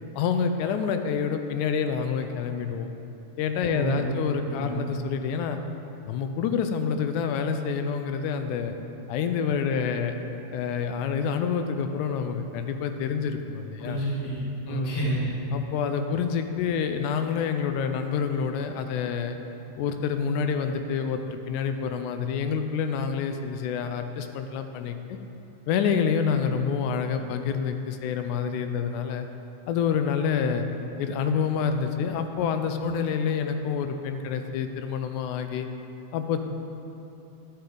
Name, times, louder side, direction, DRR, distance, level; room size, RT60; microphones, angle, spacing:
voice 1, 0.1-2.9 3.4-5.6 6.1-8.7 9.1-10.2 10.5-14.0 14.7-15.0 15.5-19.4 19.8-25.2 25.7-29.3 29.7-30.6 31.0-35.7 36.1-36.4, left 6 dB, 80° left, 7 dB, 2.0 m, -27 dB
voice 2, 3.7-4.1 4.4-4.8 13.8-15.3, right 1 dB, 25° left, -5 dB, 0.5 m, -30 dB
11.5 x 9.0 x 3.8 m, 2.9 s
omnidirectional pair, 3.6 m